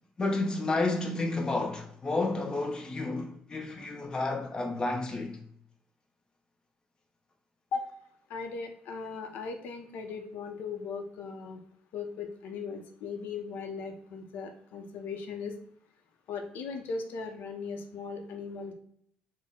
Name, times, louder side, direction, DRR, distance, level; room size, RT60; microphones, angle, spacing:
voice 1, 0.2-5.4, left 2 dB, 25° left, 0.6 m, -31 dB
voice 2, 8.3-11.6 11.9-15.6 16.3-18.7, left 5 dB, 80° left, 0.5 m, -38 dB
4.1 x 2.0 x 3.6 m
cardioid pair, 115°, 3 cm